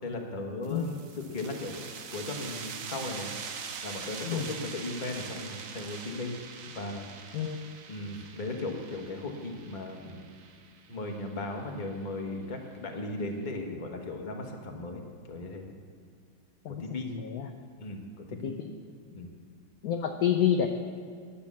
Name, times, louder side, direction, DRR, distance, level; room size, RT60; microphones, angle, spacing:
voice 1, 0.0-1.8 2.1-3.3 3.8-6.4 6.7-7.5 7.9-10.2 10.9-15.7 16.7-17.1 17.8-18.6 19.1-19.3, left 2 dB, 30° left, 2 dB, 1.0 m, -37 dB
sound 1, 0.6-12.0, right 6 dB, 60° right, 0.9 m, -43 dB
voice 2, 17.1-17.5 18.4-18.7 19.8-20.7, left 9 dB, 70° left, 5 dB, 0.9 m, -28 dB
10.5 x 8.3 x 7.1 m, 2.1 s
omnidirectional pair, 2.2 m